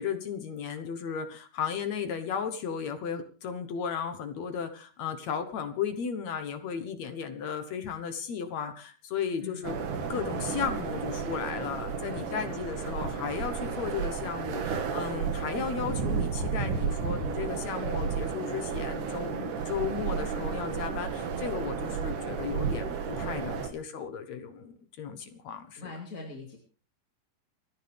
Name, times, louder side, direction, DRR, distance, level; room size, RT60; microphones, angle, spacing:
voice 1, 0.0-9.7 10.1-25.9, left 7 dB, 65° left, 8 dB, 1.9 m, -35 dB
sound 1, 9.6-23.7, right 6 dB, 60° right, 2.9 m, -32 dB
voice 2, 12.0-12.6 25.8-26.6, left 3 dB, 25° left, 1 dB, 2.0 m, -42 dB
28.5 x 10.0 x 3.5 m, 0.39 s
omnidirectional pair, 4.7 m